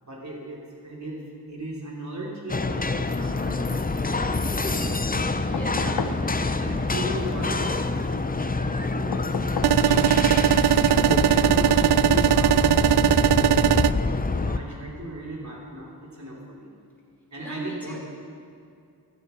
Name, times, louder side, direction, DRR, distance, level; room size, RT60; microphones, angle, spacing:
voice 1, 0.0-4.5 5.7-9.4 9.7-10.5 10.8-16.7 17.3-18.0, right 1 dB, 45° right, -4 dB, 3.7 m, -37 dB
sound 1, 2.5-14.6, left 3 dB, 20° left, 0.6 m, -26 dB
voice 2, 4.5-5.2 5.5-5.7 11.0-11.2 17.4-18.0, equal, 5° left, -5 dB, 4.5 m, -36 dB
sound 2, 5.5-6.3 9.1-9.8 11.4-11.5, left 7 dB, 70° left, 0.7 m, -32 dB
sound 3, 9.6-13.9, right 10 dB, 70° right, 0.5 m, -19 dB
15.5 x 14.5 x 4.6 m, 2.4 s
wide cardioid pair, 90°, 40 cm